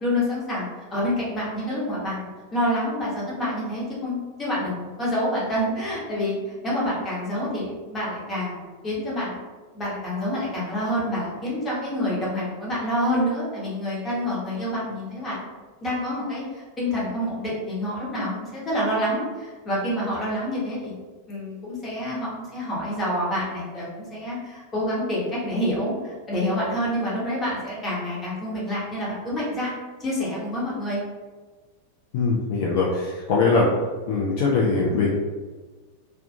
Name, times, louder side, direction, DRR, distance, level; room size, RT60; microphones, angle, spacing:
voice 1, 0.0-9.4 9.7-15.4 15.8-20.9 21.3-29.7 30.0-31.0, equal, 20° left, -6 dB, 1.0 m, -27 dB
voice 2, 32.1-33.7 34.1-35.1, left 4 dB, 50° left, -4 dB, 0.4 m, -21 dB
2.3 x 2.2 x 2.7 m, 1.3 s
figure-of-eight pair, 90°, 0 cm